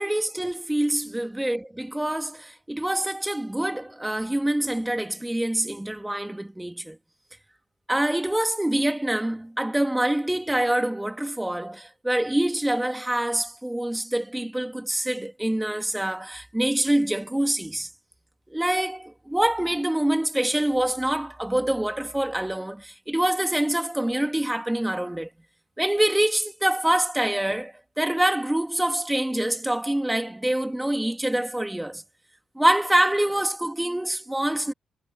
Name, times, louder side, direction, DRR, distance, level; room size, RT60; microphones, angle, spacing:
voice 1, 0.0-7.0 7.9-17.9 18.5-25.3 25.8-32.0 32.5-34.7, right 1 dB, 10° right, 3.0 m, -25 dB
hypercardioid pair, 45°, 0 cm